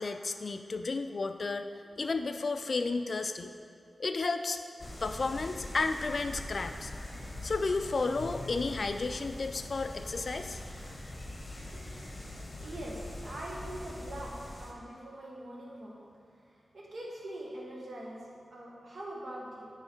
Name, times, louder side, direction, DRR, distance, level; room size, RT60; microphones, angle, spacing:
voice 1, 0.0-1.7 2.0-3.5 4.0-4.6 5.0-6.9 7.4-10.6, left 3 dB, 50° left, 8 dB, 0.3 m, -32 dB
sound 1, 4.8-14.7, left 1 dB, 30° left, 0.8 m, -43 dB
voice 2, 12.6-16.0 16.5-18.2 18.5-19.7, right 1 dB, 65° right, -4 dB, 1.3 m, -43 dB
9.1 x 3.2 x 4.4 m, 2.3 s
wide cardioid pair, 105°, 0 cm